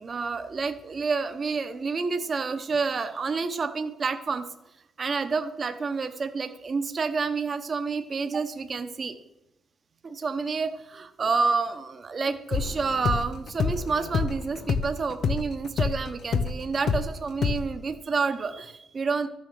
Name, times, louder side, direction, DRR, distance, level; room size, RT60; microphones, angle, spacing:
voice 1, 0.0-4.4 5.0-9.1 10.0-19.3, right 4 dB, 40° right, 8 dB, 0.9 m, -29 dB
sound 1, 12.5-17.1 17.4-17.6, left 5 dB, 65° left, 0.6 m, -27 dB
12.5 x 6.4 x 6.1 m, 0.91 s
cardioid pair, 90°, 0 cm